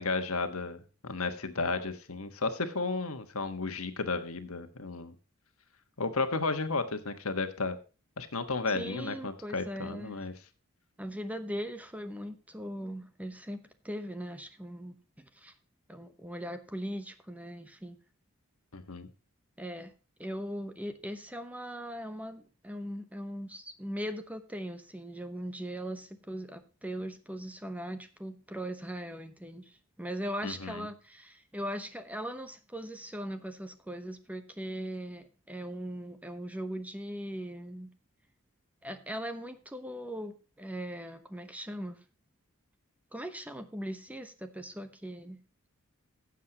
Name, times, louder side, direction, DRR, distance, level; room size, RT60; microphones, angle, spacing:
voice 1, 0.0-5.1 6.0-7.8 8.2-10.3 18.7-19.1 30.4-30.9, left 3 dB, 70° left, 8 dB, 1.4 m, -33 dB
voice 2, 8.7-10.3 11.0-15.5 15.9-18.0 19.6-19.9 20.2-37.9 38.8-42.0 43.1-45.4, equal, 5° right, 9 dB, 0.9 m, -39 dB
16.0 x 7.5 x 2.9 m, 0.33 s
head